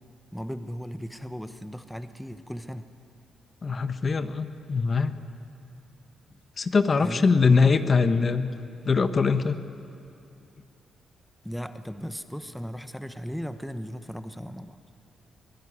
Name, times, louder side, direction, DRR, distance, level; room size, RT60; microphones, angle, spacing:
voice 1, 0.3-2.9 7.0-7.3 11.4-14.8, equal, ahead, 10 dB, 1.0 m, -36 dB
voice 2, 3.6-5.2 6.6-8.5 8.9-9.6, left 4 dB, 40° left, 10 dB, 1.1 m, -22 dB
23.5 x 17.5 x 9.9 m, 2.5 s
cardioid pair, 85°, 0 cm